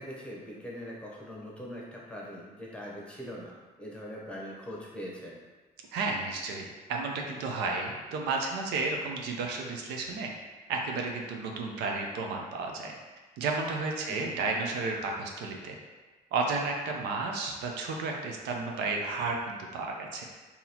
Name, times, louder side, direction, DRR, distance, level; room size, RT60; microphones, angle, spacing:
voice 1, 0.0-5.4 14.1-14.3, equal, 5° left, -4 dB, 0.8 m, -42 dB
voice 2, 5.9-10.3 10.7-12.9 13.4-15.8 16.3-20.2, right 3 dB, 80° right, 1 dB, 0.6 m, -32 dB
3.9 x 2.8 x 2.9 m, 1.3 s
cardioid pair, 110°, 17 cm